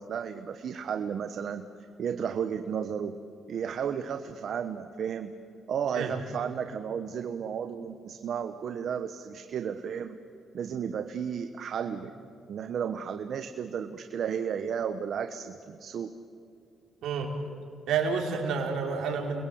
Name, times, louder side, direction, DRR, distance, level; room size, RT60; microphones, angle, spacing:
voice 1, 0.0-1.7 2.0-3.2 3.5-5.3 5.7-10.1 10.5-12.1 12.5-16.1, right 7 dB, 65° right, 8 dB, 1.1 m, -33 dB
voice 2, 17.9-19.4, right 5 dB, 80° right, 0 dB, 4.5 m, -29 dB
29.5 x 21.5 x 7.9 m, 2.5 s
cardioid pair, 85°, 0 cm